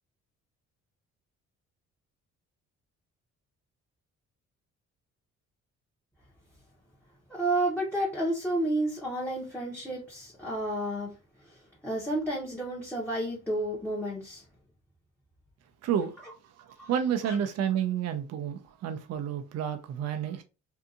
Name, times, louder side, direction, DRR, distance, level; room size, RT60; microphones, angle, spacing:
voice 1, 7.3-11.1 11.8-14.4 16.2-16.3 16.8-16.9 17.3-17.4, right 1 dB, 5° left, 0.8 m, -31 dB
voice 2, 15.8-16.1 16.6-20.4, right 8 dB, 60° right, 0.5 m, -30 dB
2.7 x 2.5 x 2.4 m
cardioid pair, 90°, 30 cm